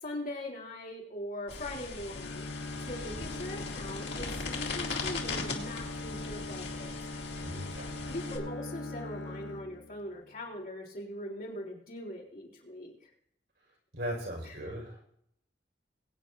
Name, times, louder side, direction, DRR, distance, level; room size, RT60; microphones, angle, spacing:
voice 1, 0.0-2.4 2.8-6.9 8.1-13.1 14.4-14.7, left 1 dB, 50° left, -2 dB, 3.7 m, -41 dB
sound 1, 1.5-8.4, left 4 dB, 70° left, 2.4 m, -39 dB
Bowed string instrument, 2.1-10.3, left 2 dB, 90° left, 0.7 m, -41 dB
voice 2, 7.4-8.1 13.9-15.0, equal, 70° right, 0 dB, 5.5 m, -38 dB
22.5 x 9.3 x 2.7 m, 0.70 s
head